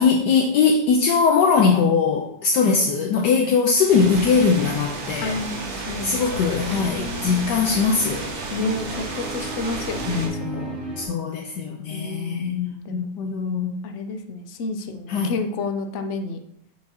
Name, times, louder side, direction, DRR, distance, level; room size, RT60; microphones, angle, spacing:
voice 1, 0.0-5.4 6.0-8.3 10.1-13.8 15.1-15.4, left 5 dB, 70° left, 1 dB, 1.2 m, -21 dB
sound 1, 3.9-10.3, right 3 dB, 60° right, 1.6 m, -32 dB
sound 2, 5.0-11.1, right 1 dB, 40° right, 2.5 m, -36 dB
voice 2, 5.2-6.8 8.5-10.7 11.9-13.1 13.8-16.4, left 3 dB, 90° left, 6 dB, 0.6 m, -31 dB
6.7 x 6.2 x 2.8 m, 0.73 s
omnidirectional pair, 2.0 m